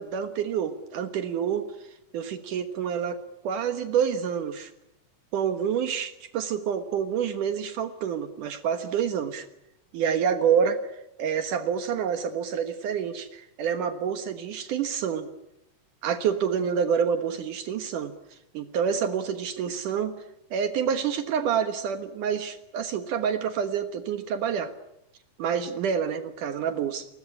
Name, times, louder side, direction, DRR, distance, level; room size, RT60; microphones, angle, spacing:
voice 1, 0.0-1.6 2.1-4.7 5.3-9.5 9.9-15.3 16.0-20.1 20.5-24.7 25.4-27.1, right 7 dB, 75° right, 8 dB, 2.9 m, -28 dB
29.0 x 21.0 x 9.8 m, 0.86 s
omnidirectional pair, 3.7 m